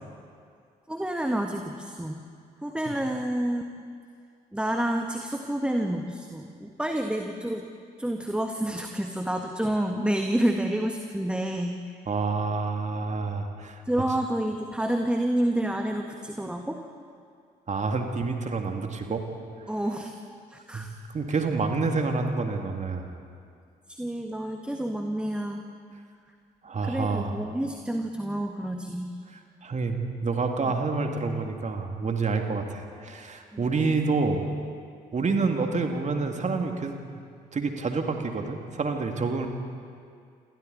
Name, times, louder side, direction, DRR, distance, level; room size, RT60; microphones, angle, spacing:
voice 1, 0.9-2.2 2.6-3.6 4.5-7.7 8.0-11.8 13.8-16.9 19.7-20.1 20.5-20.9 23.9-25.6 26.8-29.1 33.5-33.6, right 1 dB, 5° right, 4 dB, 1.7 m, -29 dB
voice 2, 12.1-13.8 17.7-19.2 20.7-23.1 26.6-27.4 29.6-34.4 35.1-36.9 37.5-39.5, right 4 dB, 35° right, 4 dB, 2.5 m, -28 dB
28.5 x 24.0 x 4.2 m, 2.3 s
figure-of-eight pair, 45°, 21 cm